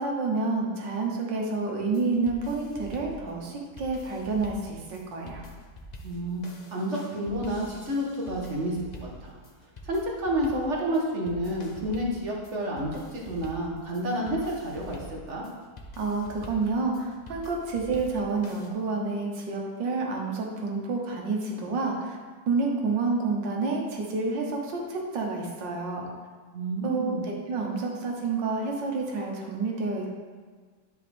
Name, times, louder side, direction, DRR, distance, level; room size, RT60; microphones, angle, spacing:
voice 1, 0.0-5.5 16.0-22.2 22.5-26.1 26.8-30.1, right 3 dB, 90° right, 0 dB, 1.8 m, -29 dB
sound 1, 1.8-18.7, equal, 75° left, 0.4 m, -46 dB
voice 2, 6.0-6.4 6.7-8.8 9.2-9.4 9.8-15.4 26.5-27.3, equal, 45° right, -2 dB, 1.4 m, -30 dB
10.5 x 4.9 x 3.5 m, 1.5 s
omnidirectional pair, 1.9 m